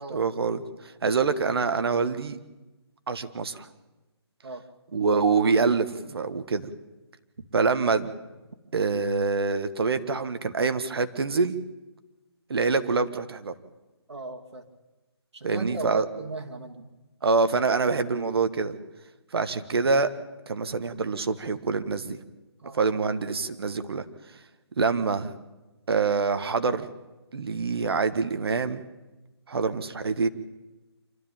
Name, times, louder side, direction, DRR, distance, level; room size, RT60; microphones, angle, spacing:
voice 1, 0.1-2.4 3.1-3.7 4.9-6.7 7.5-8.1 8.7-11.6 12.5-13.5 15.4-16.0 17.2-18.8 19.3-20.1 20.5-22.2 22.7-24.0 24.8-25.3 25.9-26.9 27.3-28.8 29.5-30.3, right 4 dB, 65° right, 10 dB, 1.5 m, -25 dB
voice 2, 14.1-14.6 15.3-16.9 22.6-22.8, right 3 dB, 80° right, 3 dB, 2.8 m, -37 dB
26.5 x 13.0 x 8.9 m, 1.1 s
hypercardioid pair, 165°, 14 cm